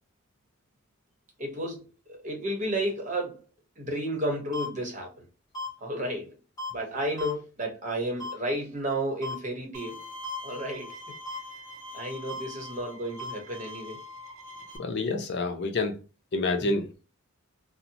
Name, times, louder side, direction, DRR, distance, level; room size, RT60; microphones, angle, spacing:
voice 1, 1.4-1.8 2.1-3.4 3.8-5.2 5.8-6.4 6.7-10.0 10.4-11.0 11.9-14.0, right 1 dB, 35° right, 0.9 m, -32 dB
sound 1, 4.5-4.7 5.5-5.7 6.6-6.7 7.2-7.3 8.2-8.3 9.2-9.3 10.2-10.4 11.2-11.4 12.3-12.4 13.2-13.3, left 2 dB, 20° left, 1.3 m, -34 dB
Bowed string instrument, 9.7-14.8, left 2 dB, 70° right, 0.6 m, -43 dB
voice 2, 14.8-16.0 16.3-16.9, left 3 dB, 55° left, 0.5 m, -28 dB
2.7 x 2.0 x 2.6 m
head